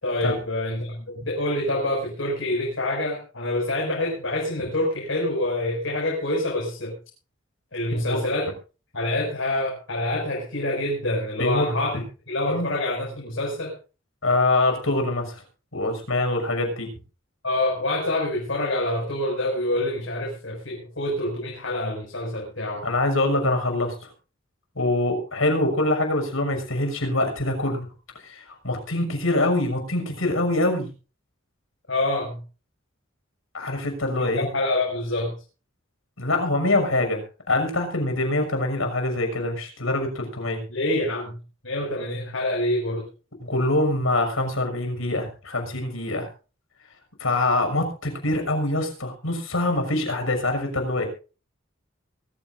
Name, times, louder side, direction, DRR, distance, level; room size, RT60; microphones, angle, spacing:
voice 1, 0.0-6.9 7.7-8.5 8.9-12.0 12.3-13.7 17.4-22.8 31.9-32.4 34.2-35.3 40.7-41.4 41.6-43.0, left 1 dB, 70° left, -2 dB, 6.2 m, -26 dB
voice 2, 14.2-15.4 15.7-16.9 22.8-23.9 24.8-27.9 28.2-30.9 33.5-34.5 36.2-40.6 43.4-46.3 47.2-51.1, left 2 dB, 85° left, 5 dB, 6.2 m, -24 dB
23.5 x 14.5 x 2.6 m, 0.35 s
head